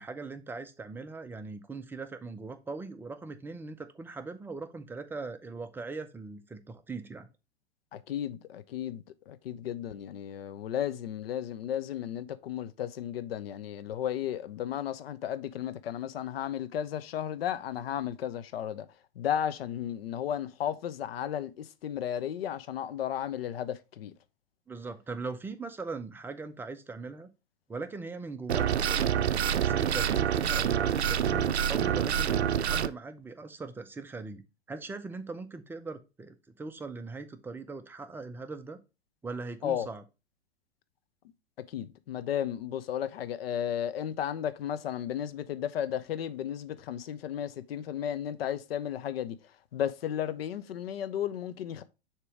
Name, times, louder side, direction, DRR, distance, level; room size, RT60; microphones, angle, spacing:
voice 1, 0.0-7.3 24.7-27.3 27.7-38.8 39.2-40.0, right 3 dB, 5° right, 0.4 m, -40 dB
voice 2, 7.9-18.9 19.2-24.1 39.6-39.9 41.7-49.4 49.7-51.8, left 10 dB, 65° left, 0.7 m, -34 dB
sound 1, 28.5-32.9, right 9 dB, 85° right, 0.5 m, -27 dB
6.7 x 3.0 x 4.9 m
hypercardioid pair, 105°, 32 cm